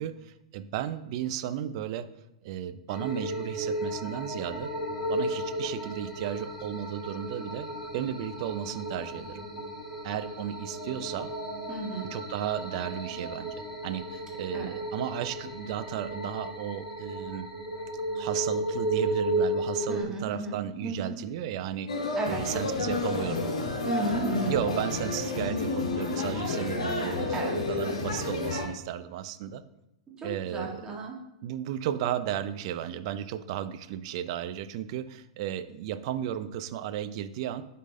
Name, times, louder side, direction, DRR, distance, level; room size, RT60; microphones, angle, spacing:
voice 1, 0.0-2.1 2.4-4.7 5.1-7.7 7.9-9.5 10.0-11.3 12.1-13.5 13.8-17.5 18.1-23.5 24.5-29.6 30.2-30.8 31.4-37.6, right 10 dB, 55° right, 11 dB, 0.5 m, -34 dB
sound 1, 2.9-20.0, right 1 dB, 5° left, 2.5 m, -34 dB
voice 2, 11.7-12.1 14.5-14.7 19.9-20.6 20.8-21.1 22.1-22.4 23.8-24.6 27.3-27.6 30.2-31.2, right 2 dB, 20° right, -3 dB, 1.7 m, -33 dB
sound 2, 21.9-28.7, left 2 dB, 75° left, 1.6 m, -30 dB
9.4 x 3.8 x 3.7 m, 0.86 s
hypercardioid pair, 115°, 4 cm